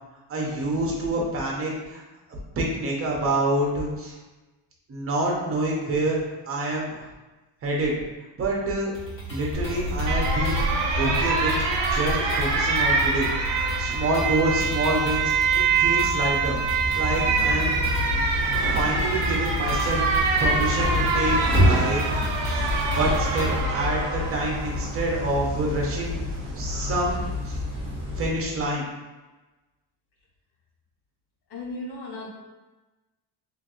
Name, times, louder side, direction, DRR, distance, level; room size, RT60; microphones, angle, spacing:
voice 1, 0.3-2.0 2.6-4.2 4.9-6.2 6.5-7.1 7.6-7.9 8.4-8.9 9.3-10.7 11.0-11.5 11.9-16.6 16.9-17.8 18.7-20.0 20.4-22.6 22.9-26.2 26.5-27.6 28.2-28.9, right 1 dB, 30° right, -2 dB, 0.8 m, -27 dB
sound 1, 9.0-23.6, equal, 25° left, 1.3 m, -35 dB
Alarm, 9.5-26.8, right 3 dB, 65° right, 0.7 m, -25 dB
sound 2, 16.7-28.4, left 1 dB, 10° right, 1.1 m, -29 dB
voice 2, 31.5-32.3, left 2 dB, 60° left, -3 dB, 1.0 m, -35 dB
3.2 x 3.2 x 2.5 m, 1.1 s
cardioid pair, 140°, 46 cm